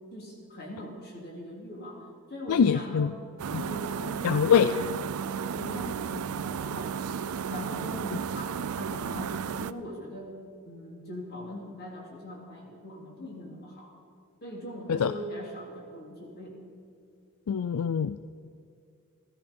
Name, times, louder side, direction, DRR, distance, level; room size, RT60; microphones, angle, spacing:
voice 1, 0.1-2.0 2.3-3.1 3.5-5.0 5.5-7.2 7.5-10.3 10.6-14.0 14.4-16.6, left 1 dB, 45° left, -1 dB, 3.0 m, -41 dB
voice 2, 2.5-3.1 3.5-3.6 4.2-4.7 14.9-15.1 17.5-18.2, left 7 dB, 75° left, 12 dB, 0.4 m, -23 dB
sound 1, 3.4-9.7, right 7 dB, 75° right, 0.4 m, -33 dB
15.5 x 13.0 x 5.3 m, 2.3 s
head